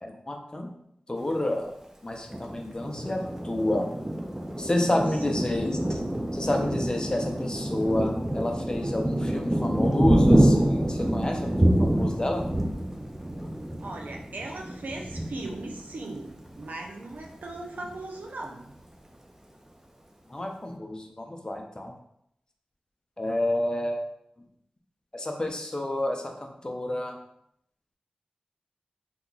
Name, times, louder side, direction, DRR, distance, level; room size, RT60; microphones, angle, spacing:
voice 1, 0.0-0.7 1.1-1.7 2.0-3.9 4.6-6.0 6.3-12.4 20.3-21.9 23.2-24.0 25.1-27.2, left 1 dB, 30° left, 2 dB, 0.6 m, -29 dB
Thunder, 2.3-16.6 17.1-17.3 17.6-18.2, right 1 dB, 15° right, 0.4 m, -26 dB
voice 2, 13.8-18.8, right 2 dB, 85° right, 0 dB, 0.5 m, -38 dB
2.9 x 2.3 x 3.8 m, 0.75 s
cardioid pair, 50°, 3 cm